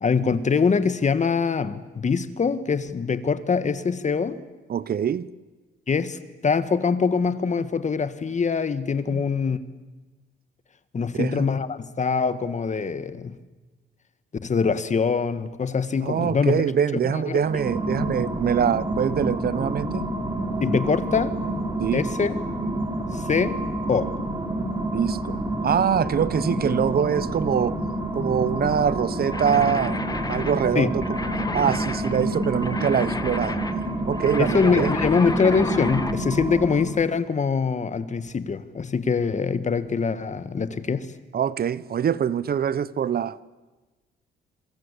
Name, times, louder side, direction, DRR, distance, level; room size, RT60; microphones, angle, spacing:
voice 1, 0.0-4.4 5.9-9.6 10.9-13.3 14.4-16.6 17.1-17.4 20.6-21.4 21.9-22.3 23.1-23.6 23.9-24.1 30.8-31.0 34.4-41.1, left 5 dB, 35° left, 1.8 m, -23 dB
voice 2, 4.7-5.3 9.1-9.2 11.2-11.3 16.0-20.1 21.8-22.0 24.9-27.8 28.1-30.0 30.3-30.9 31.5-33.6 34.1-34.9 41.3-43.4, right 8 dB, 50° right, 1.0 m, -24 dB
sound 1, 17.4-37.1, right 1 dB, 20° right, 6.6 m, -28 dB
sound 2, 29.3-36.2, left 3 dB, 20° left, 1.9 m, -33 dB
27.0 x 25.0 x 8.5 m
cardioid pair, 90°, 20 cm